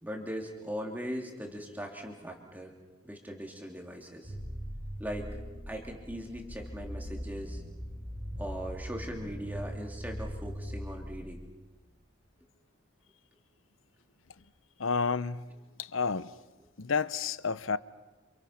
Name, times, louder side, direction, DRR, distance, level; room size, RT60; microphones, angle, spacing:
voice 1, 0.0-2.7 3.0-4.3 5.0-5.4 5.7-7.6 8.4-11.4, equal, 10° right, 3.1 m, -40 dB
sound 1, 4.2-11.8, equal, 30° right, 3.7 m, -41 dB
voice 2, 14.8-15.5 15.8-16.3 16.8-17.8, left 5 dB, 75° left, 0.8 m, -30 dB
29.0 x 28.0 x 5.9 m
head